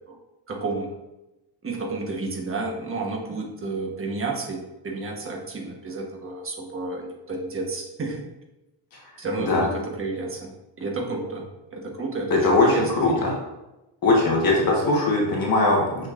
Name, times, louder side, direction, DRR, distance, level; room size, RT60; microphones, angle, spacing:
voice 1, 0.5-0.9 1.6-8.2 9.2-10.5 10.8-13.4, right 3 dB, 30° right, 0 dB, 1.2 m, -31 dB
voice 2, 12.3-13.3 14.0-16.1, left 2 dB, 45° left, -3 dB, 1.3 m, -20 dB
6.3 x 6.3 x 2.5 m, 0.97 s
cardioid pair, 160°, 46 cm